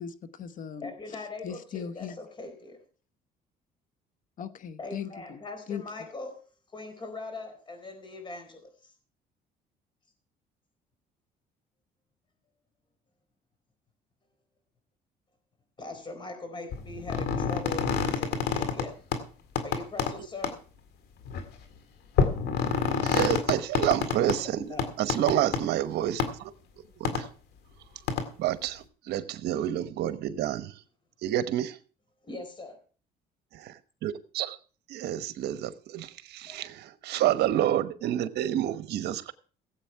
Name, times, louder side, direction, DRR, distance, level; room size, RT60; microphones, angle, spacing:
voice 1, 0.0-2.2 4.4-5.4 5.7-5.8, left 8 dB, 50° left, 13 dB, 1.0 m, -39 dB
voice 2, 0.8-2.8 4.8-6.4 6.7-8.9 15.8-19.0 19.6-20.6 24.4-24.9 32.2-32.8 36.5-36.6, left 2 dB, 30° left, 6 dB, 4.2 m, -41 dB
sound 1, 16.7-18.9 19.1-19.2 19.6-20.1 20.4-20.5 21.3-21.4 22.2-24.4 24.8-25.6 26.2-26.3 27.1-27.2 28.1-28.2, left 6 dB, 75° left, 2.0 m, -27 dB
voice 3, 23.0-24.6 25.0-26.5 27.0-27.3 28.4-30.8 31.2-31.8 33.5-34.6 34.9-39.3, right 12 dB, 75° right, 12 dB, 1.1 m, -29 dB
17.0 x 8.1 x 4.6 m, 0.39 s
cardioid pair, 110°, 17 cm